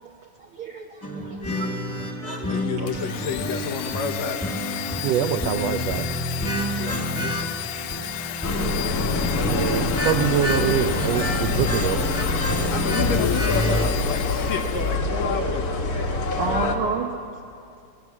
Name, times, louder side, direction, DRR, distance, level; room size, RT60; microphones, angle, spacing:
voice 1, 0.0-3.0 4.8-5.0 6.4-6.7 7.5-7.8 8.3-8.4 8.8-9.8 11.3-11.6 16.4-17.7, right 4 dB, 65° right, 2 dB, 1.3 m, -34 dB
sound 1, 1.0-13.9, equal, 10° left, 0.8 m, -29 dB
voice 2, 2.5-4.4 6.8-7.6 12.7-16.1, left 5 dB, 65° left, 5 dB, 2.2 m, -30 dB
Domestic sounds home sounds, 2.9-15.0, left 11 dB, 85° left, 1.3 m, -33 dB
voice 3, 5.0-6.1 9.4-12.0, right 9 dB, 85° right, 8 dB, 1.4 m, -24 dB
sound 2, 8.4-16.8, left 3 dB, 40° left, 1.5 m, -25 dB
19.5 x 19.5 x 7.3 m, 2.4 s
omnidirectional pair, 3.6 m